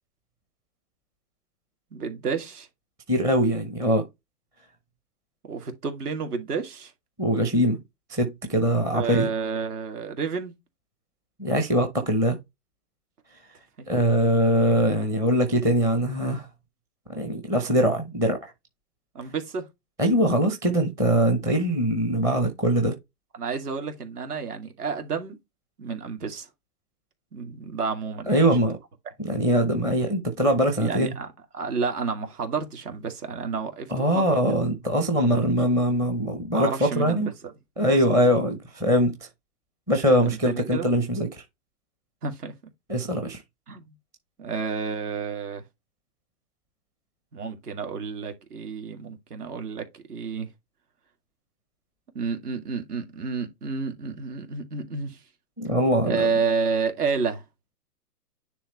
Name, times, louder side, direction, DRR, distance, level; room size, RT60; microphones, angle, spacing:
voice 1, 1.9-2.7 5.5-6.9 8.9-10.5 19.1-19.6 23.3-25.4 25.8-26.5 27.3-28.5 30.8-31.3 31.5-34.4 35.2-35.5 36.5-37.5 37.9-38.1 40.2-40.9 42.2-42.5 43.7-43.9 44.4-45.6 47.3-50.5 52.1-55.2 56.0-57.4, right 5 dB, 65° right, 2.4 m, -30 dB
voice 2, 3.1-4.0 7.2-7.8 8.1-9.3 11.4-12.4 13.9-16.5 17.1-18.5 20.0-23.0 28.3-28.8 29.2-31.1 33.9-37.3 37.8-39.1 39.9-41.3 42.9-43.4 55.6-56.3, equal, 5° right, 0.6 m, -22 dB
10.0 x 3.4 x 3.0 m
hypercardioid pair, 135°, 49 cm